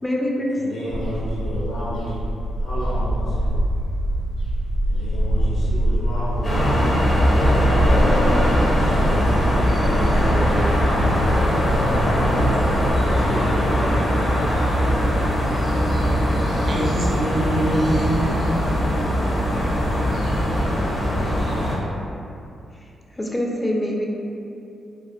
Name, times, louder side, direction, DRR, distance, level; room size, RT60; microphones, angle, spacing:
voice 1, 0.0-0.5 23.1-24.1, left 1 dB, 25° left, -1 dB, 0.5 m, -24 dB
voice 2, 0.5-2.3 2.6-3.5 4.9-6.8 8.7-11.5 12.9-14.3, equal, 65° left, -10 dB, 1.3 m, -31 dB
sound 1, 0.9-13.2, equal, 90° left, 0.6 m, -25 dB
sound 2, 6.4-21.8, equal, 45° left, 0.9 m, -20 dB
voice 3, 16.6-18.8, right 1 dB, 55° right, -2 dB, 0.5 m, -24 dB
3.3 x 2.4 x 2.4 m, 2.7 s
hypercardioid pair, 45°, 0 cm